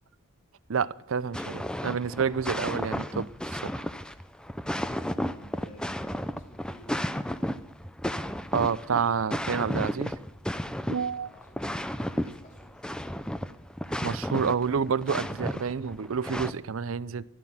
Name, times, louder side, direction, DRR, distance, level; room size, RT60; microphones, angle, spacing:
voice 1, 0.7-3.8 8.5-10.1 10.9-11.3 14.0-17.2, right 6 dB, 70° right, 19 dB, 0.5 m, -29 dB
sound 1, 1.3-16.5, equal, 5° left, 0.6 m, -33 dB
voice 2, 4.9-7.1 11.1-13.5, left 1 dB, 35° left, 1 dB, 3.4 m, -54 dB
13.5 x 12.5 x 7.2 m, 0.86 s
head